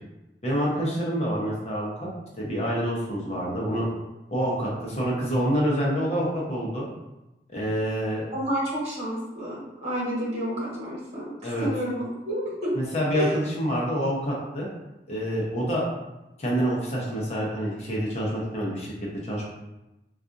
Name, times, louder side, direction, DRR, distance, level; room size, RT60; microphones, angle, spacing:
voice 1, 0.4-2.1 2.4-3.8 4.3-6.9 7.5-8.3 11.4-11.7 12.7-14.7 15.1-15.9 16.4-19.5, equal, 35° left, -4 dB, 0.8 m, -27 dB
voice 2, 8.3-12.7 13.1-13.3, equal, 35° right, -7 dB, 1.2 m, -30 dB
4.0 x 2.4 x 2.5 m, 0.98 s
head